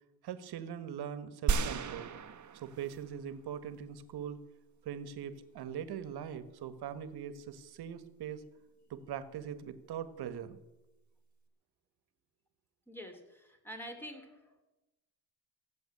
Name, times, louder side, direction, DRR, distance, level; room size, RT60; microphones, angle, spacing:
voice 1, 0.2-2.1 2.5-4.4 4.8-8.4 8.9-10.6, right 8 dB, 65° right, 12 dB, 1.6 m, -41 dB
sound 1, 1.5-3.2 3.7-3.8, right 6 dB, 45° right, 1.3 m, -34 dB
voice 2, 12.9-14.6, equal, 5° left, 5 dB, 3.2 m, -47 dB
15.5 x 7.8 x 9.7 m, 1.0 s
cardioid pair, 90°, 41 cm